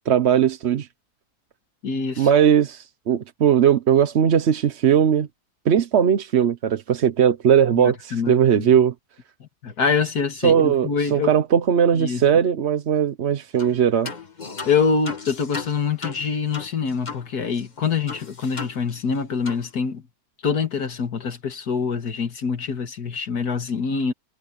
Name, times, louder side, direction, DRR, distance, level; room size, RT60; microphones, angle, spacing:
voice 1, 0.1-0.9 2.2-5.3 5.6-8.9 10.4-14.1, right 8 dB, 50° right, 1.0 m, -19 dB
voice 2, 1.8-2.3 7.7-8.8 9.4-11.3 12.0-12.2 14.7-20.0 20.4-24.1, left 5 dB, 85° left, 2.3 m, -25 dB
sound 1, 13.6-13.8 14.0-17.3 17.5-17.6 18.1-19.2 19.4-19.6, left 4 dB, 30° left, 1.5 m, -35 dB
omnidirectional pair, 1.6 m